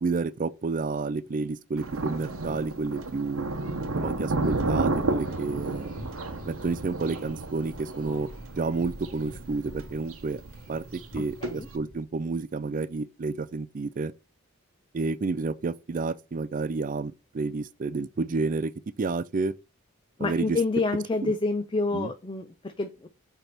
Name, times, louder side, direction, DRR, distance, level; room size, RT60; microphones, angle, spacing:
voice 1, 0.0-3.5 4.0-5.9 6.5-8.3 8.6-10.4 10.7-10.8 11.1-14.1 14.9-18.7 19.0-19.5 20.2-20.6 21.2-21.3 21.9-22.1, right 3 dB, 40° right, 0.4 m, -30 dB
Thunder, 1.8-11.8, right 2 dB, 85° right, 0.9 m, -32 dB
sound 1, 5.2-12.0, equal, 5° left, 2.2 m, -48 dB
voice 2, 11.2-11.7 20.2-23.1, left 3 dB, 25° left, 0.5 m, -28 dB
6.6 x 3.4 x 5.7 m
head